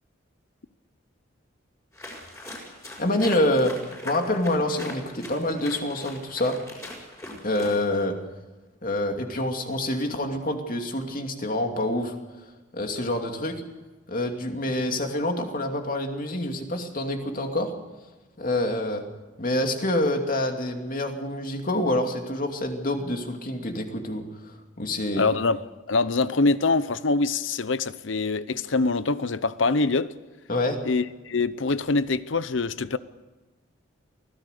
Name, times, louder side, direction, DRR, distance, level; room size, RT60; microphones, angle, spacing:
sound 1, 1.9-8.0, left 1 dB, 15° left, 5.9 m, -41 dB
voice 1, 3.0-3.7 4.0-6.6 7.4-8.2 8.8-12.2 12.7-13.6 14.1-17.7 18.4-19.0 19.4-25.3 30.5-30.8, left 1 dB, 45° left, 4 dB, 2.7 m, -27 dB
voice 2, 25.2-30.1 30.9-33.0, left 3 dB, 75° left, 15 dB, 0.8 m, -24 dB
24.5 x 17.0 x 6.7 m, 1.2 s
head